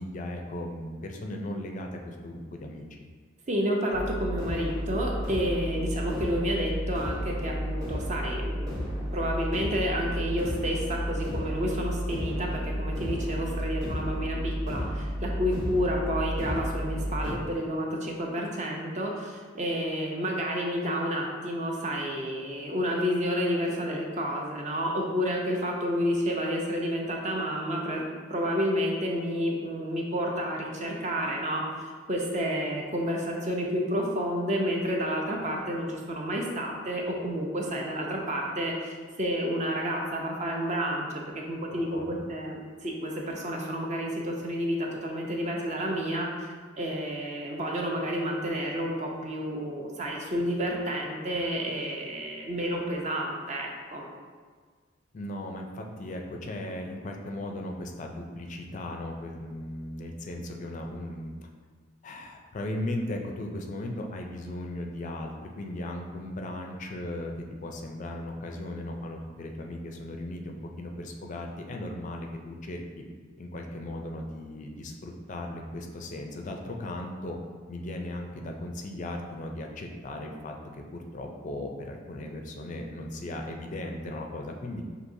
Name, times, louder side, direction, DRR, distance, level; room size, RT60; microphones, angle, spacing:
voice 1, 0.0-2.9 41.7-42.2 55.1-61.3 62.0-67.3 67.6-73.0 73.4-77.4 77.7-84.8, left 1 dB, 40° left, 3 dB, 0.4 m, -37 dB
voice 2, 3.5-8.7 9.1-28.0 28.3-31.6 32.1-41.1 41.3-46.5 46.8-54.0, equal, 35° right, 0 dB, 0.6 m, -30 dB
sound 1, 3.9-17.3, equal, 15° right, 1.0 m, -32 dB
6.0 x 2.8 x 2.6 m, 1.6 s
head